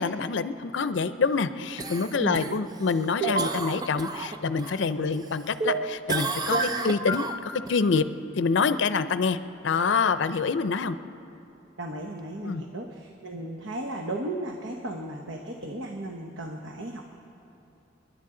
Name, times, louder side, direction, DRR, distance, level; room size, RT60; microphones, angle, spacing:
voice 1, 0.0-8.0 8.4-9.4 9.6-11.0 12.4-12.6, left 5 dB, 70° left, 12 dB, 0.5 m, -26 dB
Cough, 1.8-4.8 5.2-5.8 6.1-7.8 12.2-12.3, right 3 dB, 20° right, 0.5 m, -34 dB
voice 2, 2.2-2.6 5.0-5.1 11.8-17.1, right 1 dB, 80° right, 2 dB, 1.0 m, -35 dB
sound 1, 3.2-3.6 5.6-6.2 6.5-7.3, right 3 dB, 50° right, 1.1 m, -27 dB
29.0 x 11.0 x 3.8 m, 2.9 s
head